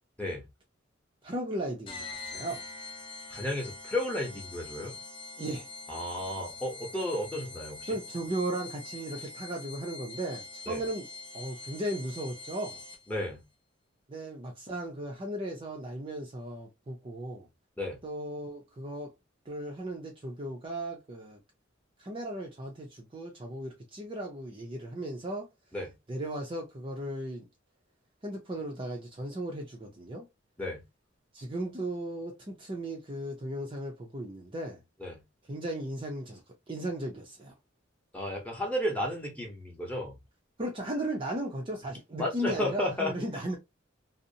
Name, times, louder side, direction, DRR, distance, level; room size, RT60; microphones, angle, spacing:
voice 1, 1.2-2.6 5.4-5.7 7.9-11.1 11.3-12.8 14.1-17.5 18.0-19.1 19.5-21.4 22.0-25.5 26.1-27.5 28.2-30.3 31.3-34.8 35.5-36.4 36.7-37.5 40.6-43.6, right 1 dB, 25° right, 0.5 m, -36 dB
sound 1, 1.9-13.2, left 4 dB, 25° left, 0.4 m, -44 dB
voice 2, 3.3-5.0 5.9-8.0 10.7-10.8 13.1-13.4 17.8-18.0 25.7-25.9 30.6-30.8 35.0-35.2 38.1-40.2 42.2-43.2, left 1 dB, 5° left, 0.8 m, -33 dB
2.6 x 2.0 x 2.6 m
head